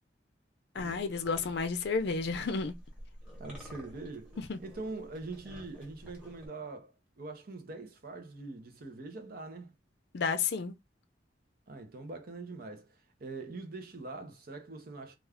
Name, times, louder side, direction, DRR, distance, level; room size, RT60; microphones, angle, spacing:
voice 1, 0.7-2.7 4.4-4.6 10.1-10.8, left 5 dB, 65° left, 0.5 m, -31 dB
sound 1, 0.7-6.5, equal, 5° right, 0.9 m, -50 dB
voice 2, 3.4-9.7 11.7-15.2, right 3 dB, 55° right, 0.6 m, -43 dB
2.3 x 2.3 x 3.4 m
head